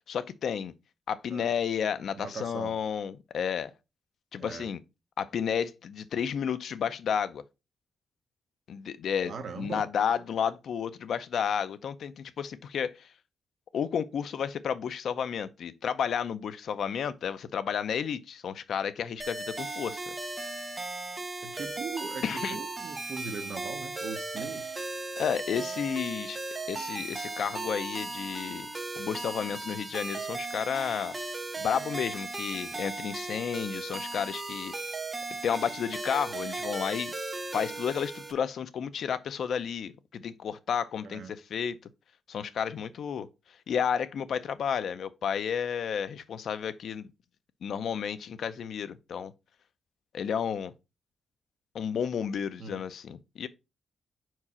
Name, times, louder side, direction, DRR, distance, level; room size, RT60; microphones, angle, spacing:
voice 1, 0.1-0.7 1.1-3.7 4.3-4.8 5.2-7.4 8.7-13.1 13.7-20.1 22.2-22.6 25.2-26.4 26.7-28.7 29.0-31.2 31.6-34.7 35.4-37.1 37.5-41.8 42.3-43.3 43.7-47.1 47.6-49.3 50.1-50.7 51.7-53.5, left 7 dB, 65° left, 0.5 m, -32 dB
voice 2, 2.2-2.8 4.4-4.7 9.2-9.8 21.4-24.8 41.0-41.3 52.6-52.8, right 5 dB, 55° right, 0.9 m, -40 dB
sound 1, 19.2-38.3, right 3 dB, 20° right, 0.8 m, -37 dB
4.9 x 4.6 x 4.2 m
wide cardioid pair, 160°, 0 cm